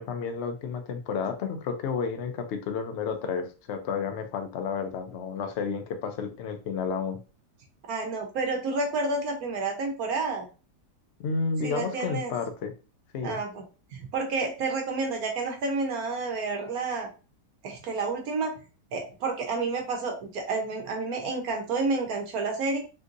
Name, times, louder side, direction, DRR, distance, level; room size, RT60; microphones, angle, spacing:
voice 1, 0.0-7.2 11.2-12.7 13.1-13.4, left 5 dB, 70° left, 7 dB, 0.6 m, -31 dB
voice 2, 7.9-10.5 11.6-12.3 13.2-13.6 13.9-17.1 17.6-18.5 18.9-22.8, right 3 dB, 65° right, 2 dB, 1.1 m, -30 dB
3.7 x 2.7 x 2.5 m, 0.33 s
omnidirectional pair, 1.8 m